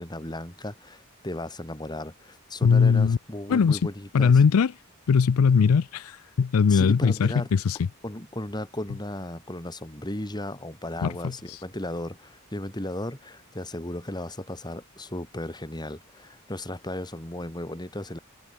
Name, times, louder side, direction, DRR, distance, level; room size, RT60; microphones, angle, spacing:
voice 1, 0.0-4.4 6.7-7.5 8.0-18.2, left 1 dB, 20° left, 3.1 m, -35 dB
voice 2, 2.6-3.2 3.5-3.8 4.1-4.7 5.1-7.8 11.0-11.6, left 6 dB, 90° left, 0.4 m, -20 dB
head